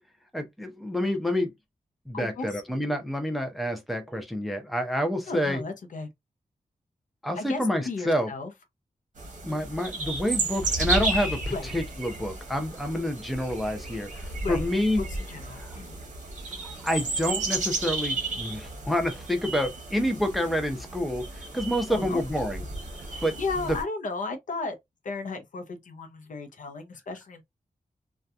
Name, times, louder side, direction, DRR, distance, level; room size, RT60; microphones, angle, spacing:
voice 1, 0.3-1.5 2.1-5.6 7.2-8.3 9.4-15.0 15.6-15.7 16.6-21.3 21.5-22.6 23.2-23.3, equal, ahead, 0.4 m, -28 dB
voice 2, 2.1-2.6 5.3-6.1 7.3-8.5 9.5-9.7 11.5-11.7 14.4-14.7 15.0-16.0 21.9-22.4 23.1-24.8 25.0-27.4, left 3 dB, 70° left, 0.6 m, -35 dB
sound 1, 9.2-23.8, right 2 dB, 60° right, 1.0 m, -33 dB
2.7 x 2.2 x 2.3 m
wide cardioid pair, 155°, 14 cm